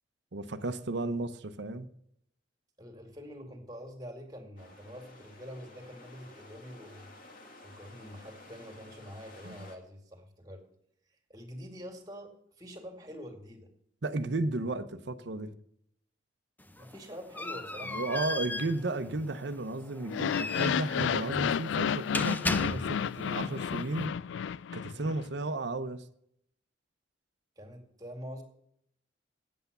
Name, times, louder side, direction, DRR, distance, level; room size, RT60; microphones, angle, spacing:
voice 1, 0.3-1.9 9.4-9.6 14.0-15.5 17.8-24.1 24.7-26.0, right 2 dB, 65° right, 0.8 m, -34 dB
voice 2, 2.8-7.1 7.6-10.6 11.3-13.7 16.7-18.3 18.6-19.1 24.9-25.2 27.6-28.4, equal, 20° right, 2.2 m, -46 dB
sound 1, 4.6-9.8, left 2 dB, 50° left, 2.3 m, -53 dB
sound 2, 16.6-23.2, left 2 dB, 10° left, 0.6 m, -37 dB
sound 3, 20.1-25.2, left 7 dB, 75° left, 0.3 m, -31 dB
9.3 x 8.2 x 6.7 m
head